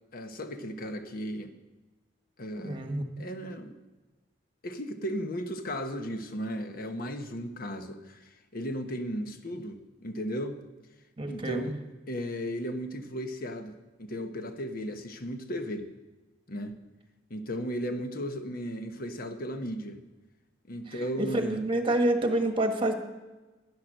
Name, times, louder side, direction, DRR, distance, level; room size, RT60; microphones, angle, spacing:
voice 1, 0.1-1.5 2.4-2.8 3.2-3.8 4.6-10.6 11.3-15.9 16.5-16.7 17.3-20.0 20.7-21.6, equal, 55° left, 7 dB, 1.1 m, -35 dB
voice 2, 2.6-3.1 11.2-11.7 21.2-22.9, right 1 dB, 30° right, 5 dB, 1.3 m, -27 dB
10.5 x 10.5 x 6.5 m, 1.2 s
head